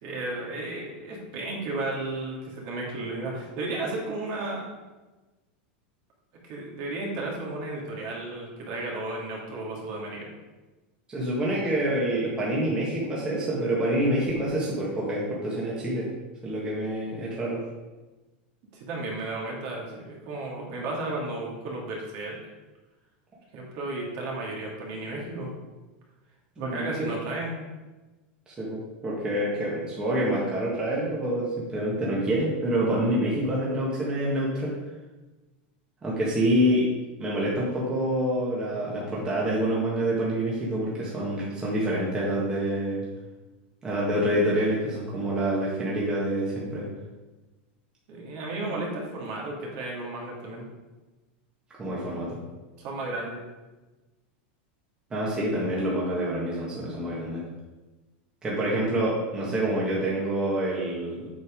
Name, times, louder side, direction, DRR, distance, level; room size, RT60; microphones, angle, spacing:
voice 1, 0.0-4.7 6.4-10.3 18.7-22.4 23.5-25.5 26.6-27.5 48.1-50.6 52.8-53.4, right 2 dB, 45° right, -2 dB, 2.5 m, -33 dB
voice 2, 11.1-16.1 16.4-17.6 26.6-27.1 28.5-34.8 36.0-36.9 37.2-43.1 43.8-46.9 51.8-52.3 55.1-57.4 58.4-61.3, right 1 dB, 15° right, -6 dB, 1.7 m, -27 dB
7.8 x 5.5 x 5.2 m, 1.2 s
supercardioid pair, 160°, 6 cm